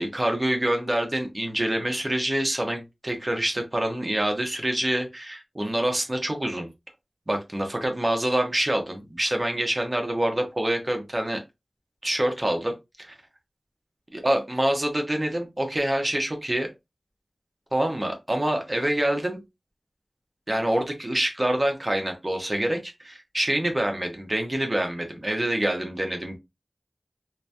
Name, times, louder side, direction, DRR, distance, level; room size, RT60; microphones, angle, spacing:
voice 1, 0.0-6.7 7.3-11.4 12.0-12.7 13.0-13.1 14.1-16.7 17.7-19.4 20.5-26.4, right 1 dB, 35° right, 4 dB, 0.9 m, -26 dB
2.9 x 2.6 x 2.3 m, 0.22 s
wide cardioid pair, 50°, 0 cm